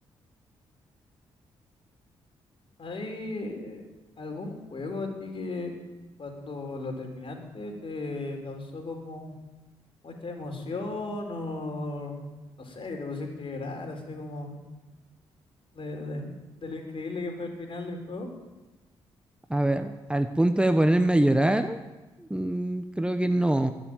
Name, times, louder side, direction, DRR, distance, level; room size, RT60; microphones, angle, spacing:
voice 1, 2.8-3.8 4.2-5.7 6.2-9.3 10.0-12.3 12.6-14.6 15.7-18.3, left 2 dB, 50° left, 3 dB, 4.6 m, -36 dB
voice 2, 19.5-21.8 22.2-23.7, right 1 dB, 10° right, 9 dB, 1.1 m, -24 dB
22.0 x 7.4 x 9.0 m, 1.1 s
supercardioid pair, 55°, 12 cm